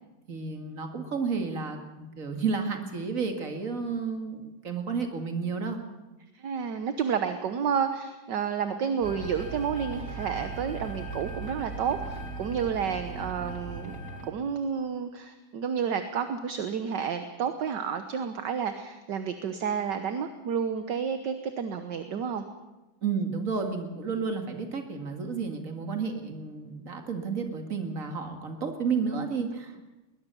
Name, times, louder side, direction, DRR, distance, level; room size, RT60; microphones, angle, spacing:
voice 1, 0.3-5.8 23.0-29.9, right 5 dB, 45° right, 5 dB, 2.5 m, -31 dB
voice 2, 6.3-14.0 14.3-22.4, right 7 dB, 65° right, 8 dB, 1.6 m, -30 dB
sound 1, 9.0-14.3, right 3 dB, 45° left, 3.2 m, -38 dB
21.0 x 20.0 x 6.9 m, 1.1 s
omnidirectional pair, 2.1 m